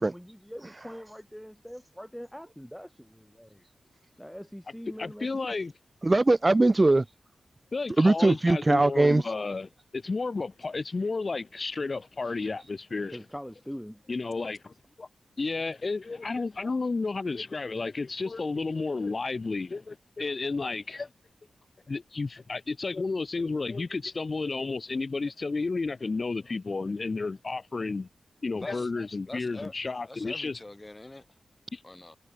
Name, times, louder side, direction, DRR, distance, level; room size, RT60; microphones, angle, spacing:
voice 1, 0.0-3.6 4.2-5.5 13.1-14.0, equal, 5° left, 1.5 m, -43 dB
voice 2, 5.0-5.7 7.7-13.2 14.1-15.1 15.4-21.1 21.9-28.1 28.4-30.6 31.7-31.8, left 3 dB, 45° left, 1.8 m, -32 dB
voice 3, 6.0-7.0 8.0-9.2, right 2 dB, 30° right, 0.7 m, -21 dB
voice 4, 28.5-28.9 29.2-29.7 30.1-31.4 31.8-32.2, left 2 dB, 25° left, 4.6 m, -44 dB
cardioid pair, 60°, 0 cm